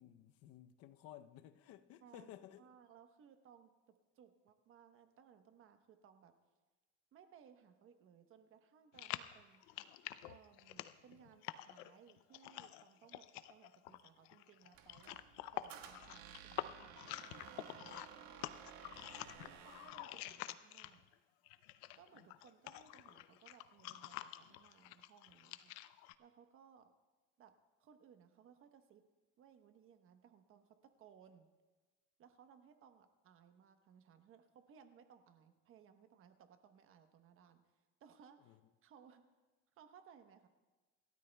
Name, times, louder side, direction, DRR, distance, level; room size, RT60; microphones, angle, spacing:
voice 1, 0.0-2.6 18.9-19.4 38.4-38.6, left 11 dB, 50° left, 0.7 m, -57 dB
voice 2, 2.0-6.3 7.1-9.6 10.2-15.2 15.5-18.1 19.4-21.1 21.9-25.8 26.2-26.9 27.4-27.5 27.8-29.0 29.4-31.5 32.2-39.2 39.7-40.5, right 8 dB, 45° right, 1.0 m, -63 dB
sound 1, 8.9-21.1 21.5-26.1, left 15 dB, 90° left, 0.6 m, -48 dB
Squeak, 14.7-20.0, right 9 dB, 65° right, 1.4 m, -56 dB
27.5 x 13.0 x 2.3 m
cardioid pair, 140°, 30 cm